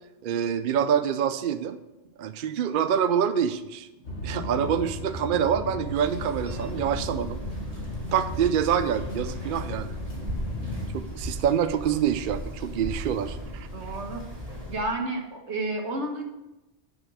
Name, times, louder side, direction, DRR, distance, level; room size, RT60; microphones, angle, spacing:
voice 1, 0.2-1.8 2.2-3.9 4.2-7.4 8.1-9.9 10.9-13.7, right 8 dB, 60° right, 11 dB, 0.6 m, -26 dB
sound 1, 4.0-10.9, left 1 dB, 90° left, 1.9 m, -36 dB
sound 2, 5.9-14.8, equal, 35° right, 1.9 m, -37 dB
voice 2, 13.7-14.2 14.7-16.2, right 2 dB, 85° right, 2 dB, 1.7 m, -31 dB
9.8 x 5.3 x 6.2 m, 0.98 s
omnidirectional pair, 1.1 m